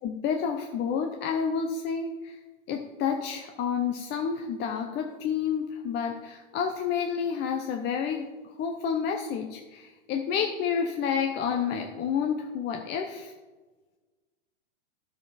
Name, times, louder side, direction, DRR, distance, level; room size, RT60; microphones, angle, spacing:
voice 1, 0.0-2.4 2.7-13.3, left 7 dB, 30° left, 3 dB, 0.8 m, -30 dB
10.5 x 6.8 x 4.2 m, 1.3 s
hypercardioid pair, 120°, 36 cm